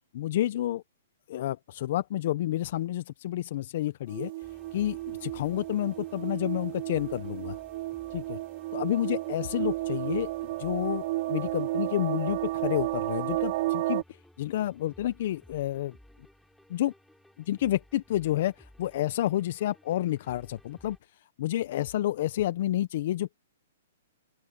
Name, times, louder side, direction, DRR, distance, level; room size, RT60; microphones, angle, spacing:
voice 1, 0.1-0.8 1.3-4.3 4.7-7.5 8.1-8.4 8.7-10.3 10.6-14.0 14.4-16.0 16.7-16.9 17.5-21.0 21.4-23.4, left 13 dB, 55° left, 1.0 m, -29 dB
sound 1, 4.1-14.0, right 18 dB, 45° right, 0.9 m, -32 dB
sound 2, 4.4-21.0, left 1 dB, ahead, 7.8 m, -57 dB
open air
hypercardioid pair, 130°, 0 cm